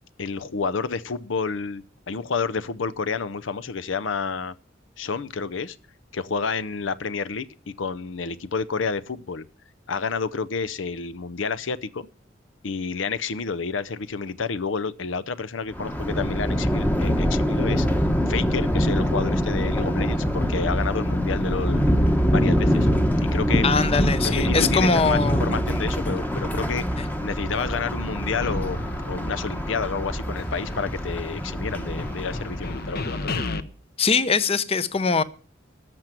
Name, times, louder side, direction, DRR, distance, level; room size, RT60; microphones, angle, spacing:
voice 1, 0.2-4.5 5.0-5.8 6.1-9.4 9.9-12.1 12.6-17.9 18.3-21.8 22.3-22.9 23.2-23.7 24.2-33.4, left 5 dB, 80° left, 0.6 m, -30 dB
Thunder, 15.7-33.1, equal, 10° left, 0.9 m, -24 dB
voice 2, 23.6-25.4 27.0-27.1 34.0-35.2, left 4 dB, 30° left, 0.7 m, -22 dB
sound 1, 28.4-30.1 30.4-33.6, left 2 dB, 55° left, 0.9 m, -34 dB
14.0 x 5.9 x 9.0 m
head